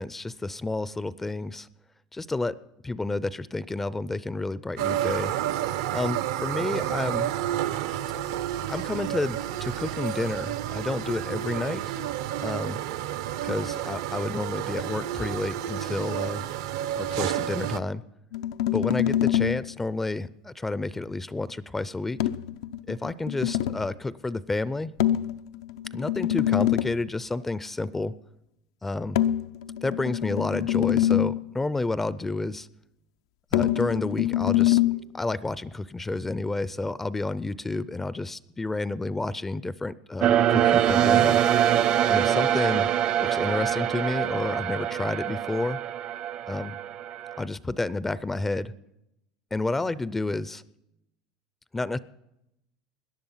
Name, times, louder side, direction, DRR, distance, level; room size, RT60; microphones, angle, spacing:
voice 1, 0.0-1.7 2.1-2.6 2.8-5.3 5.9-7.3 8.7-11.8 12.4-12.8 13.4-16.4 17.0-18.0 18.7-22.2 22.9-24.9 25.9-28.1 28.8-29.2 29.8-32.7 33.5-34.8 35.1-41.4 42.1-42.9 43.2-45.8 46.5-46.8 47.4-48.7 49.5-50.6 51.7-52.0, left 2 dB, 10° left, 18 dB, 0.4 m, -30 dB
sound 1, 4.8-17.8, right 12 dB, 80° right, 0.7 m, -30 dB
sound 2, 18.3-19.7 22.2-23.9 25.0-27.0 29.1-31.5 33.5-35.0, left 12 dB, 80° left, 0.5 m, -25 dB
sound 3, 40.2-47.4, right 10 dB, 40° right, 0.6 m, -24 dB
17.5 x 10.5 x 5.6 m, 0.85 s
supercardioid pair, 130°, 2 cm